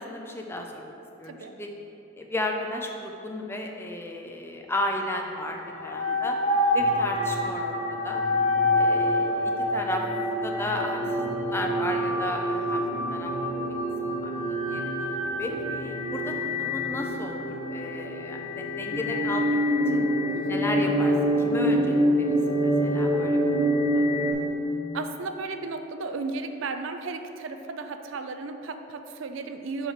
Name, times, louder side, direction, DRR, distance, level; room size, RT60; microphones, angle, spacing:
voice 1, 0.0-1.7 2.2-6.4 6.7-7.8 8.0-8.2 8.7-10.0 10.4-12.8 13.1-13.6 14.2-19.6 19.9-20.1 20.5-23.4 23.7-24.0, left 1 dB, 10° left, 1 dB, 0.4 m, -34 dB
sound 1, 5.4-24.3, equal, 35° left, 1.2 m, -26 dB
voice 2, 12.7-13.1 15.5-15.8 20.3-20.7 24.9-29.9, right 4 dB, 65° right, 7 dB, 0.4 m, -35 dB
5.4 x 4.6 x 5.8 m, 3.0 s
head